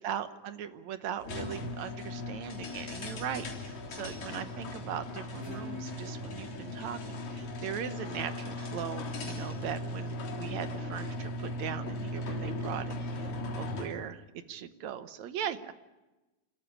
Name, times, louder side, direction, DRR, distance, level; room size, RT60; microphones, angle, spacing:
voice 1, 0.0-15.7, right 9 dB, 70° right, 12 dB, 2.2 m, -39 dB
sound 1, 1.2-14.0, left 1 dB, 60° left, 4.8 m, -38 dB
Guitar, 5.4-8.6, left 2 dB, 5° left, 6.9 m, -48 dB
27.0 x 14.5 x 9.9 m, 1.1 s
omnidirectional pair, 3.6 m